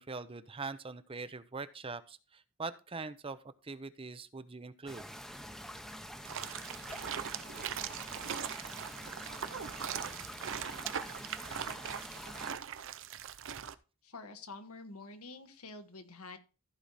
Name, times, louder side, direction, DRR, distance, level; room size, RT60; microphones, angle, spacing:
voice 1, 0.0-3.4 3.6-5.1, right 4 dB, 25° right, 13 dB, 0.6 m, -42 dB
sound 1, 4.9-12.5, equal, ahead, 0.8 m, -46 dB
sound 2, 6.2-13.7, right 8 dB, 65° right, 0.6 m, -40 dB
voice 2, 14.0-16.4, left 3 dB, 90° left, 7 dB, 1.5 m, -48 dB
14.5 x 4.8 x 4.1 m, 0.33 s
head